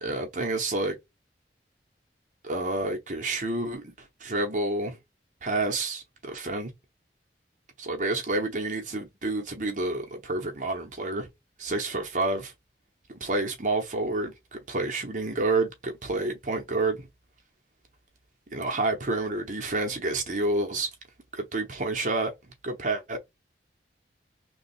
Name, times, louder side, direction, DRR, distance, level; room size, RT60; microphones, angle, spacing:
voice 1, 0.0-1.0 2.4-5.0 5.4-6.7 7.8-11.3 11.6-12.5 13.2-14.3 14.7-17.1 18.5-20.9 21.3-22.3 22.6-23.2, right 2 dB, 45° right, 0.9 m, -29 dB
3.1 x 2.3 x 4.1 m
head